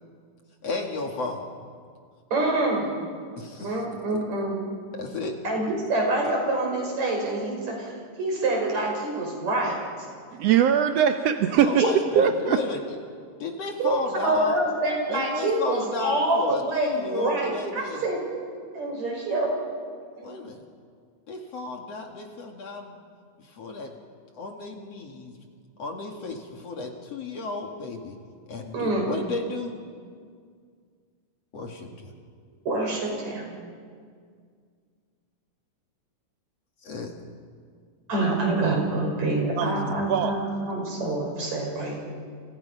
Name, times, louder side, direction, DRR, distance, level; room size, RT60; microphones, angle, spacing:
voice 1, 0.6-1.5 3.4-3.8 4.1-4.4 4.9-5.4 11.6-12.8 13.4-14.6 15.1-18.1 20.2-20.6 21.3-23.0 23.4-23.9 24.3-25.3 25.8-28.2 28.5-29.8 31.5-32.1 36.8-37.1, left 3 dB, 50° left, 2 dB, 2.9 m, -33 dB
voice 2, 2.3-2.9 3.6-4.6 5.4-7.9 8.2-9.8 11.8-11.9 13.8-14.0 14.2-18.4 18.7-19.5 20.2-20.3 28.7-29.1 32.6-33.4 38.1-42.0, right 2 dB, 55° right, 0 dB, 6.9 m, -26 dB
voice 3, 10.3-11.8 12.1-12.6 39.6-40.4, right 9 dB, 70° right, 7 dB, 1.5 m, -22 dB
29.5 x 28.5 x 5.7 m, 2.1 s
omnidirectional pair, 3.9 m